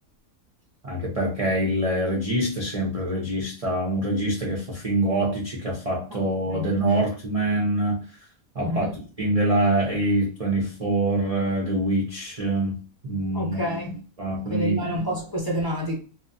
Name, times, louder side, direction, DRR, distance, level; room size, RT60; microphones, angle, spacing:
voice 1, 0.8-8.0 8.5-8.9 9.2-12.7 13.0-13.6 14.2-14.8, right 1 dB, 45° right, 0.5 m, -25 dB
voice 2, 8.6-8.9 13.3-14.0 14.5-16.0, equal, 20° left, 0.8 m, -28 dB
2.8 x 2.0 x 2.6 m
omnidirectional pair, 1.5 m